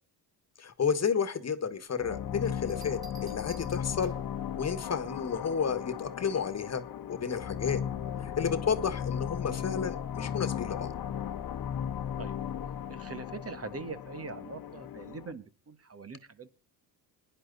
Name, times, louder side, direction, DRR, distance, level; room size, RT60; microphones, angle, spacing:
voice 1, 0.6-4.1 4.6-7.8 8.2-10.9, left 6 dB, 35° left, 12 dB, 1.7 m, -31 dB
sound 1, 2.0-15.3, left 9 dB, 55° left, 1.3 m, -36 dB
Bell, 2.5-4.4 6.0-6.4, right 3 dB, 10° right, 2.3 m, -53 dB
voice 2, 12.9-16.5, right 4 dB, 35° right, 10 dB, 1.7 m, -42 dB
20.5 x 10.5 x 4.1 m, 0.34 s
cardioid pair, 90°, 42 cm